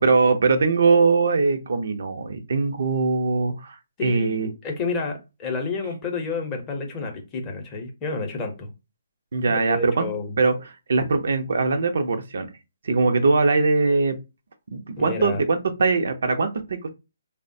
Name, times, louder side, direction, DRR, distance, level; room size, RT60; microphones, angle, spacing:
voice 1, 0.0-3.8 4.0-4.5 9.3-10.1 10.4-12.5 12.8-14.2 14.7-16.9, right 4 dB, 65° right, 0.5 m, -21 dB
voice 2, 4.0-8.7 9.5-10.4 15.0-15.4, left 4 dB, 20° left, 0.6 m, -30 dB
3.2 x 2.1 x 2.6 m
hypercardioid pair, 160°, 0 cm